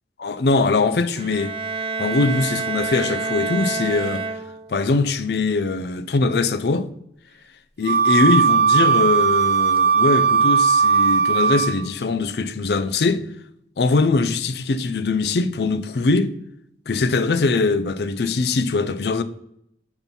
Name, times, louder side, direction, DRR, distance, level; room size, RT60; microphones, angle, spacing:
voice 1, 0.2-1.5 2.0-4.3 4.7-6.9 7.8-13.3 13.8-16.3 16.9-19.2, left 3 dB, 70° left, 0.5 m, -21 dB
Bowed string instrument, 1.1-4.8, right 4 dB, 30° right, 0.3 m, -28 dB
Wind instrument woodwind instrument, 7.8-11.9, right 5 dB, 75° right, 1.2 m, -17 dB
5.5 x 4.5 x 5.2 m
head